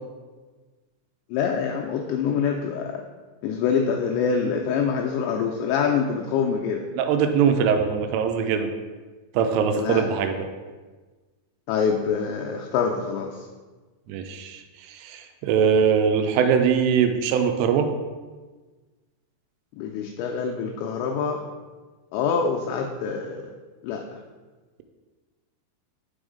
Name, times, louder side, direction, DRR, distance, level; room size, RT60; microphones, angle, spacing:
voice 1, 1.3-3.0 3.4-6.9 9.7-10.1 11.7-13.5 19.7-21.5 22.1-23.5 23.8-24.2, left 6 dB, 85° left, 1 dB, 2.5 m, -25 dB
voice 2, 7.0-8.7 9.3-10.5 14.1-14.6 14.9-17.9, right 7 dB, 85° right, 6 dB, 3.1 m, -22 dB
6.2 x 5.3 x 4.9 m, 1.3 s
omnidirectional pair, 5.7 m